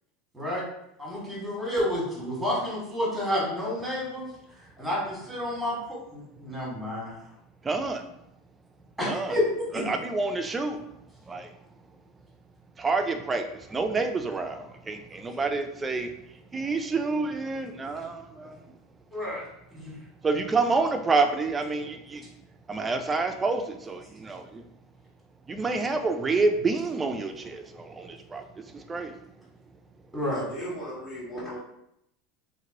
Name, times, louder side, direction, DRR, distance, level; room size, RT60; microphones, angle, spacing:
voice 1, 1.0-4.3 4.8-5.8 6.1-7.1 9.0-9.7 19.1-19.4 19.7-20.0 30.1-30.4, left 1 dB, ahead, -5 dB, 1.5 m, -29 dB
voice 2, 7.6-8.0 9.0-9.4 9.7-10.9 11.3-11.6 12.8-18.7 20.2-22.3 22.7-24.6 25.5-29.2, right 3 dB, 15° right, 6 dB, 0.4 m, -28 dB
voice 3, 30.3-31.6, equal, 25° left, -12 dB, 1.4 m, -36 dB
2.9 x 2.5 x 2.8 m, 0.78 s
supercardioid pair, 120°, 0 cm